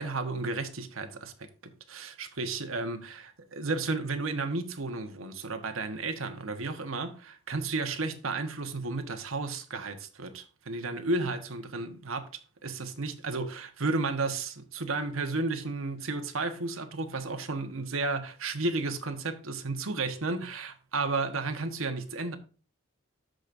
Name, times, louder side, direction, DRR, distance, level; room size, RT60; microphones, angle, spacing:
voice 1, 0.0-3.2 3.5-22.4, right 3 dB, 90° right, 1.3 m, -33 dB
13.0 x 5.1 x 2.6 m
head